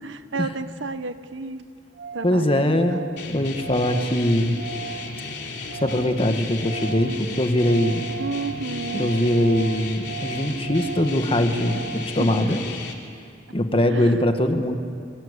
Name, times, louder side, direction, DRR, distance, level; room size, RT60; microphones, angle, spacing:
voice 1, 0.0-1.6 2.1-3.0 5.2-5.3 8.1-9.1 12.2-12.5 13.9-14.3, right 3 dB, 90° right, 11 dB, 1.3 m, -32 dB
Organ, 1.0-1.1 1.3-1.4 1.6-1.7 1.9-2.3 2.6-6.2 6.5-12.1, right 6 dB, 60° right, 2.7 m, -37 dB
voice 2, 2.2-4.6 5.7-8.0 8.9-12.6 13.5-14.8, left 1 dB, 30° left, 6 dB, 1.8 m, -22 dB
sound 1, 3.2-12.9, left 3 dB, 65° left, 3.2 m, -35 dB
28.5 x 24.5 x 8.3 m, 2.3 s
head